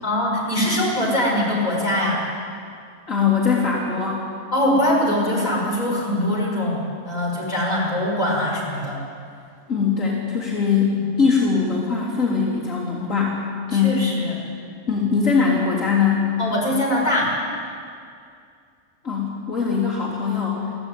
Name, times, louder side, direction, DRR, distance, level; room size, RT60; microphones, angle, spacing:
voice 1, 0.0-2.2 4.5-9.0 10.9-11.0 13.7-14.3 16.4-17.3, left 1 dB, 30° left, -4 dB, 6.0 m, -22 dB
voice 2, 3.1-4.2 9.7-13.4 13.7-14.1 14.9-16.3 19.0-20.7, left 5 dB, 65° left, -6 dB, 4.0 m, -21 dB
23.0 x 15.0 x 9.3 m, 2.3 s
omnidirectional pair, 1.5 m